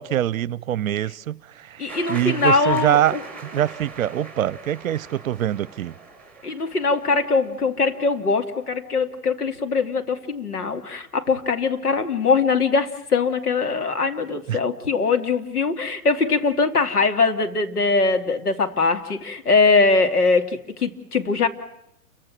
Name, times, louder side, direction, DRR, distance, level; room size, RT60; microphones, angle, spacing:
voice 1, 0.0-3.2 3.5-5.9 14.5-14.6, right 11 dB, 60° right, 0.8 m, -24 dB
voice 2, 1.8-3.2 6.4-21.5, left 4 dB, 80° left, 3.0 m, -21 dB
sound 1, 1.9-8.5, right 3 dB, 5° left, 5.4 m, -41 dB
29.5 x 15.5 x 7.5 m
hypercardioid pair, 120°, 45 cm